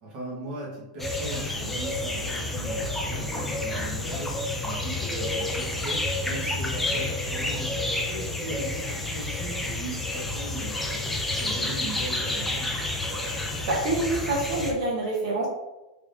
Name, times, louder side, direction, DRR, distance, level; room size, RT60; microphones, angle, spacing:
voice 1, 0.0-10.8 11.4-12.8, right 2 dB, 25° right, -4 dB, 1.0 m, -38 dB
sound 1, 1.0-14.7, left 2 dB, 5° left, 0.3 m, -30 dB
voice 2, 13.7-15.5, right 2 dB, 50° right, -2 dB, 0.9 m, -26 dB
3.5 x 3.3 x 2.5 m, 0.98 s
supercardioid pair, 175°, 4 cm